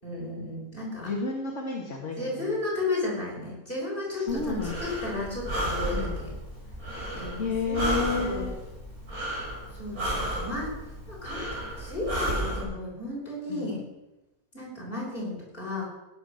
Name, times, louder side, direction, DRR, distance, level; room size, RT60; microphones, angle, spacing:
voice 1, 0.0-1.1 2.2-6.3 7.1-8.5 9.7-10.7 11.1-13.8 14.5-15.8, left 2 dB, 35° left, -4 dB, 6.7 m, -34 dB
voice 2, 1.0-2.5 4.1-4.8 5.9-6.2 7.4-8.5 13.5-13.8, left 4 dB, 50° left, 0 dB, 2.4 m, -31 dB
Breathing, 4.3-12.6, equal, 65° right, 5.5 m, -33 dB
17.0 x 10.5 x 6.6 m, 1.0 s
omnidirectional pair, 1.7 m